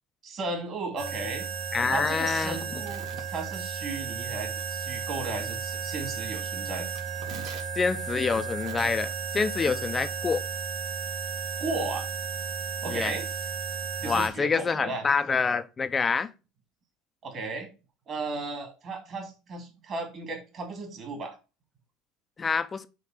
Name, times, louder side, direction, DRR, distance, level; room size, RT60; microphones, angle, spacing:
voice 1, 0.2-1.5 1.9-6.9 11.6-12.1 12.8-13.3 14.0-15.0 17.2-17.7 18.1-21.3, right 3 dB, 45° right, 2.7 m, -35 dB
sound 1, 1.0-14.3, right 6 dB, 70° right, 2.0 m, -34 dB
voice 2, 1.7-2.6 7.8-10.4 12.9-13.1 14.0-16.3 22.4-22.9, left 5 dB, 25° left, 0.6 m, -27 dB
5.3 x 4.1 x 5.8 m
supercardioid pair, 90°, 0 cm